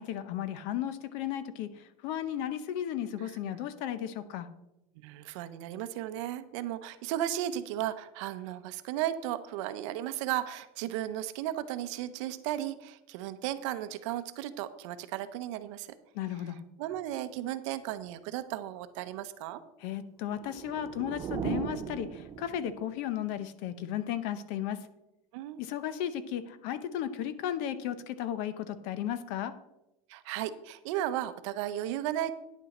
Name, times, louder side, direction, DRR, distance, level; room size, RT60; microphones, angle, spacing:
voice 1, 0.0-4.5 16.1-16.6 19.8-24.8 25.6-29.5, left 10 dB, 45° left, 13 dB, 0.7 m, -35 dB
voice 2, 5.0-15.9 16.8-19.6 25.3-25.6 30.1-32.3, right 12 dB, 60° right, 12 dB, 0.7 m, -35 dB
sound 1, 20.3-23.0, right 8 dB, 20° right, 0.3 m, -37 dB
10.0 x 8.3 x 4.2 m, 0.90 s
cardioid pair, 180°, 18 cm